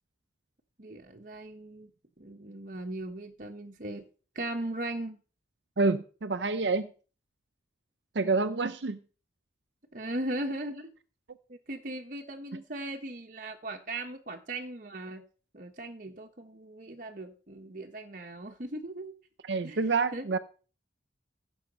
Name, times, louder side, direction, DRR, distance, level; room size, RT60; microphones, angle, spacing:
voice 1, 0.8-1.9 2.2-4.0 4.3-5.2 9.9-10.9 11.5-15.2 15.5-19.1 19.6-19.8 20.1-20.3, right 1 dB, 45° right, 3 dB, 1.2 m, -38 dB
voice 2, 5.8-6.9 8.1-9.0 19.5-20.4, right 3 dB, 70° right, 11 dB, 0.7 m, -27 dB
15.0 x 7.1 x 5.3 m, 0.38 s
head